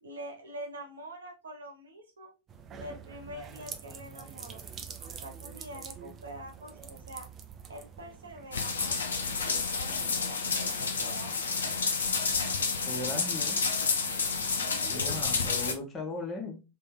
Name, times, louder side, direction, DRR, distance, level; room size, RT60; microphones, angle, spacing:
voice 1, 0.0-2.3 2.7-4.6 5.0-7.3 7.7-11.7 14.7-15.3, right 1 dB, 70° right, 1.1 m, -45 dB
sound 1, 2.5-9.1, right 7 dB, 25° right, 0.6 m, -46 dB
sound 2, 8.5-15.7, left 4 dB, 70° left, 0.7 m, -30 dB
voice 2, 12.8-13.6 14.9-16.6, left 2 dB, 20° left, 1.4 m, -37 dB
3.3 x 3.2 x 3.7 m
figure-of-eight pair, 90°, 0 cm